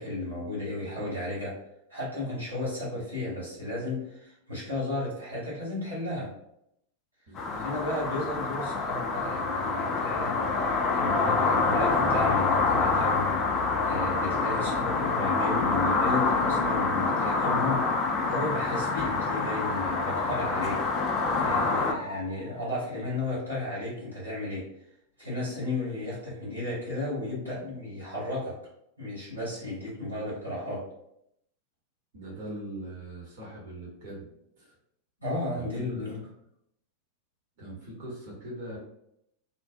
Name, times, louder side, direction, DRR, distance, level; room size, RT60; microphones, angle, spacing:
voice 1, 0.0-1.5 1.9-6.3 7.5-13.3 13.9-24.7 25.2-28.5 29.0-30.8 35.2-36.2, left 2 dB, 90° right, -7 dB, 1.3 m, -34 dB
voice 2, 0.7-1.1 7.3-7.6 32.1-34.3 34.6-34.7 35.6-36.0 37.6-38.8, right 1 dB, 50° right, -5 dB, 0.8 m, -41 dB
sound 1, 7.4-21.9, left 4 dB, 30° left, 0.3 m, -26 dB
Musical instrument, 16.3-23.1, left 1 dB, 70° left, 0.6 m, -39 dB
2.5 x 2.1 x 2.5 m, 0.76 s
figure-of-eight pair, 90°, 0 cm